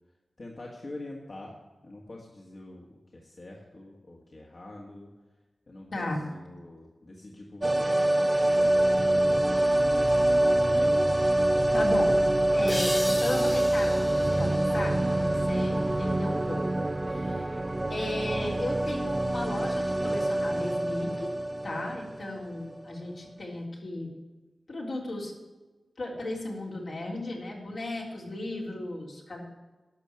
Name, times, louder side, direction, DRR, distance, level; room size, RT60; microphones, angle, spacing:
voice 1, 0.4-1.6 1.8-5.1 5.7-10.0 10.5-11.0, left 2 dB, 55° left, -1 dB, 1.9 m, -45 dB
voice 2, 5.9-6.3 11.7-12.2 12.5-17.6 17.9-21.3 21.6-24.1 24.7-25.3 26.0-29.4, left 1 dB, 75° left, -2 dB, 3.5 m, -35 dB
sound 1, 7.6-22.5 22.8-22.9, right 1 dB, 30° right, 0.6 m, -25 dB
sound 2, 12.7-16.1, left 1 dB, 15° left, 0.4 m, -38 dB
12.0 x 6.5 x 9.6 m, 1.2 s
cardioid pair, 50°, 0 cm